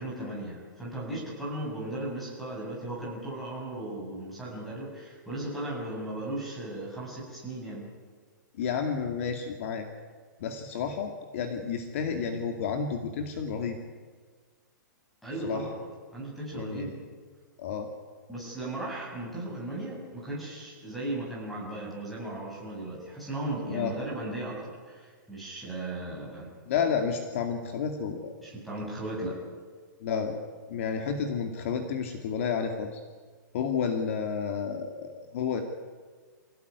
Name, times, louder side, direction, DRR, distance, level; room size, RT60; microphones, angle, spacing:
voice 1, 0.0-7.9 15.2-15.8 16.1-17.0 18.3-26.5 28.4-29.4, right 1 dB, ahead, -4 dB, 7.1 m, -36 dB
voice 2, 8.6-9.8 10.4-13.8 15.4-15.6 16.5-16.9 17.6-17.9 23.7-23.9 26.7-28.3 30.0-30.4 30.7-33.0 33.5-35.6, left 6 dB, 40° left, 4 dB, 2.4 m, -31 dB
26.5 x 17.5 x 9.7 m, 1.5 s
hypercardioid pair, 175°, 11 cm